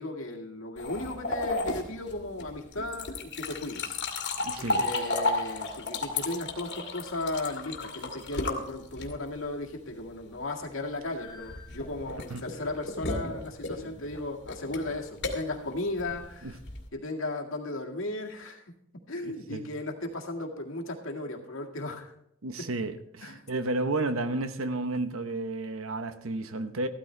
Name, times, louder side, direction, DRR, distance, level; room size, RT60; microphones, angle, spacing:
voice 1, 0.0-4.0 4.6-16.5 16.9-18.6 19.1-22.1 23.2-23.4, left 2 dB, 75° left, 2.0 m, -36 dB
sound 1, 0.8-9.4 11.2-16.9, left 2 dB, 60° left, 2.0 m, -33 dB
voice 2, 4.4-4.8 12.3-12.4 16.4-16.5 19.2-19.7 22.4-26.9, right 2 dB, 80° right, 1.0 m, -32 dB
15.0 x 12.5 x 3.3 m
head